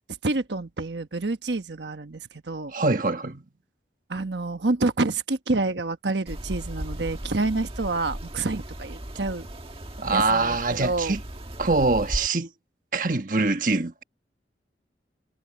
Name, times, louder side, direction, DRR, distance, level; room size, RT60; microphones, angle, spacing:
voice 1, 0.2-2.7 4.1-9.5 10.1-11.2, right 3 dB, 80° right, 1.2 m, -28 dB
voice 2, 2.7-3.4 10.0-11.2 11.6-12.5 12.9-14.0, right 3 dB, 50° right, 1.4 m, -24 dB
sound 1, 6.3-12.3, right 1 dB, 30° right, 1.9 m, -36 dB
head